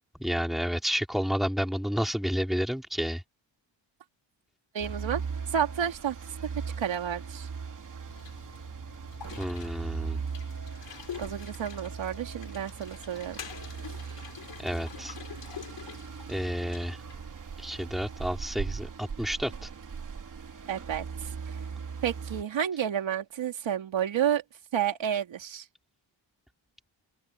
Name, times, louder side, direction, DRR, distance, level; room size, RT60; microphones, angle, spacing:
voice 1, 0.1-3.2 9.4-10.2 14.6-15.2 16.3-17.0 17.6-19.7, equal, ahead, 3.5 m, -30 dB
voice 2, 4.7-5.2 5.5-6.2 6.8-7.5 11.2-13.4 20.7-21.5 22.0-24.4 24.7-25.6, right 9 dB, 75° right, 3.2 m, -30 dB
sound 1, 4.8-22.4, right 5 dB, 40° right, 3.1 m, -39 dB
sound 2, 8.1-17.3, left 9 dB, 65° left, 4.7 m, -46 dB
open air
wide cardioid pair, 165°, 46 cm